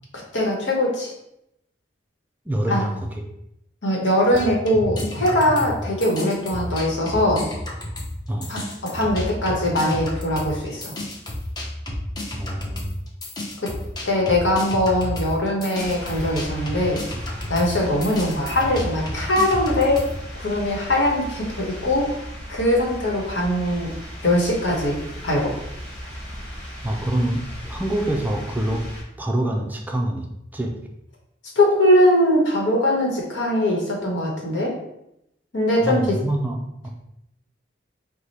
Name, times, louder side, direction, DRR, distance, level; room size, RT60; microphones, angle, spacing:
voice 1, 0.3-1.1 2.7-2.8 3.8-7.5 8.5-10.9 13.6-13.7 14.0-17.0 17.5-20.0 20.4-22.1 22.5-23.9 24.2-25.6 31.6-34.8 35.5-36.2, left 1 dB, 75° left, -1 dB, 1.2 m, -21 dB
voice 2, 2.5-3.2 8.3-8.5 12.4-13.0 26.8-28.8 29.2-30.8 35.8-36.9, right 1 dB, 10° right, 1 dB, 0.4 m, -26 dB
sound 1, 4.3-8.2 8.4-20.1, left 1 dB, 25° left, 0.7 m, -31 dB
sound 2, 15.7-29.0, equal, 5° left, 1.2 m, -36 dB
4.8 x 2.1 x 4.1 m, 0.82 s
head